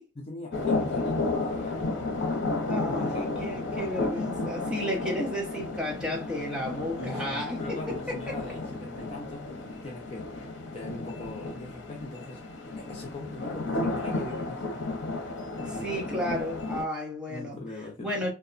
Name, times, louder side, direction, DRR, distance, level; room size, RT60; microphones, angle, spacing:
voice 1, 0.2-2.4 2.8-3.5 7.0-10.4 10.7-14.6 15.7-16.3 17.3-18.1, left 2 dB, 30° left, 0.6 m, -41 dB
sound 1, 0.5-16.8, left 2 dB, 85° left, 0.6 m, -33 dB
voice 2, 2.7-8.4 15.6-17.6 18.0-18.3, left 1 dB, 5° right, 0.8 m, -33 dB
2.7 x 2.1 x 2.4 m
head